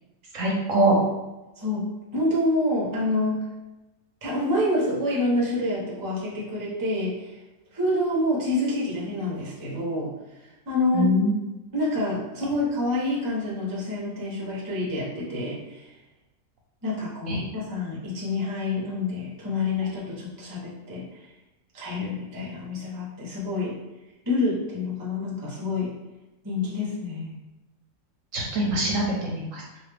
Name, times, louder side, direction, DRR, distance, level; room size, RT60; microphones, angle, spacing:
voice 1, 0.3-0.9 10.9-11.5 17.3-17.4 28.3-29.8, equal, 65° right, -2 dB, 0.9 m, -24 dB
voice 2, 2.1-3.5 4.2-7.4 7.7-10.1 10.7-11.1 11.7-15.9 16.8-21.1 21.7-23.7 24.2-25.9 26.4-27.4, left 1 dB, 20° right, -5 dB, 0.7 m, -27 dB
3.4 x 2.6 x 3.3 m, 1.0 s
omnidirectional pair, 1.6 m